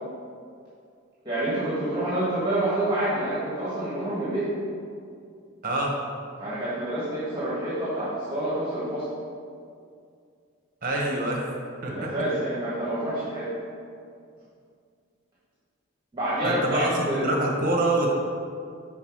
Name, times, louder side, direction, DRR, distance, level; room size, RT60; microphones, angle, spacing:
voice 1, 1.2-4.5 6.4-9.1 11.9-13.5 16.1-17.3, right 1 dB, 20° right, -10 dB, 1.5 m, -28 dB
voice 2, 5.6-5.9 10.8-11.5 11.8-12.1 16.4-18.1, right 1 dB, 40° right, -1 dB, 1.1 m, -25 dB
5.9 x 3.9 x 6.1 m, 2.3 s
head